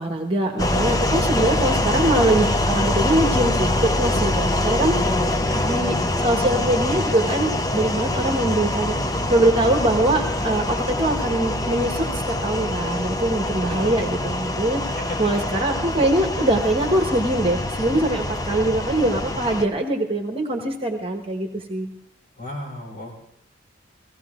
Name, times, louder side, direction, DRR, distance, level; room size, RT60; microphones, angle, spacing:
voice 1, 0.0-5.0 5.6-14.8 15.2-21.9, right 1 dB, 30° right, 3 dB, 1.3 m, -23 dB
sound 1, 0.6-19.6, left 1 dB, 20° left, 0.6 m, -24 dB
voice 2, 4.9-5.8 13.7-14.0 15.0-15.2 22.4-23.1, left 2 dB, 50° left, -2 dB, 4.6 m, -33 dB
17.0 x 16.0 x 3.7 m, 0.74 s
head